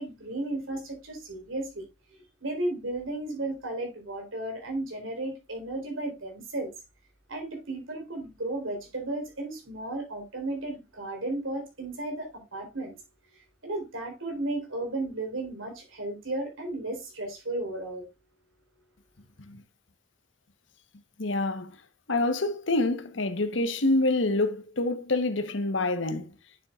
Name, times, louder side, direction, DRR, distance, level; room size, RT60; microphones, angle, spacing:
voice 1, 0.0-1.9 2.4-6.7 7.3-12.9 13.6-18.0, right 2 dB, 85° right, 4.1 m, -34 dB
voice 2, 21.2-21.7 22.1-26.3, left 2 dB, 65° left, 1.1 m, -27 dB
9.7 x 7.2 x 2.4 m
head